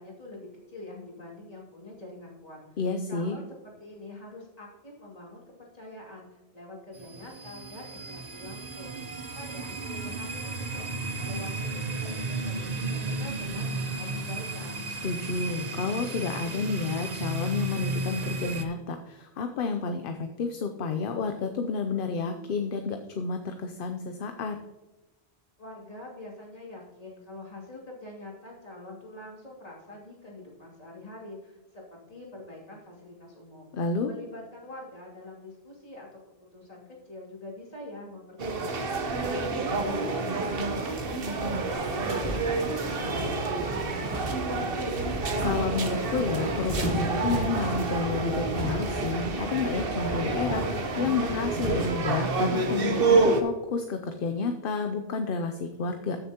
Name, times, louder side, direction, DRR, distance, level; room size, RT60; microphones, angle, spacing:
voice 1, 0.0-2.8 3.1-9.0 9.3-14.9 25.6-33.7 34.1-36.1 36.5-38.6 38.9-39.3 39.7-40.3 40.6-45.1, left 2 dB, 35° left, -4 dB, 2.7 m, -45 dB
voice 2, 2.8-3.4 15.0-24.6 33.7-34.2 45.4-56.2, left 4 dB, 60° left, 6 dB, 0.8 m, -30 dB
sound 1, 6.9-18.6, right 2 dB, 45° right, 0.8 m, -34 dB
sound 2, 38.4-53.4, right 3 dB, 60° right, 1.2 m, -28 dB
sound 3, 41.7-52.3, equal, 20° right, 2.6 m, -36 dB
14.5 x 6.9 x 2.9 m, 1.1 s
omnidirectional pair, 1.1 m